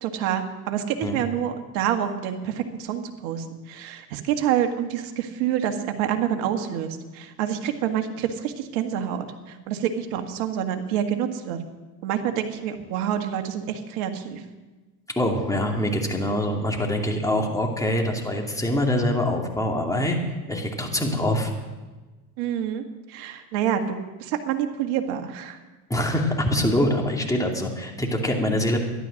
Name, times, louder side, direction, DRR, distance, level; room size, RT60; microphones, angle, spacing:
voice 1, 0.0-11.6 12.0-14.4 22.4-25.6, right 9 dB, 65° right, 6 dB, 1.8 m, -27 dB
voice 2, 15.1-20.2 20.5-21.5 25.9-28.8, left 1 dB, 10° left, 1 dB, 2.5 m, -24 dB
13.0 x 11.5 x 6.4 m, 1.2 s
hypercardioid pair, 95°, 43 cm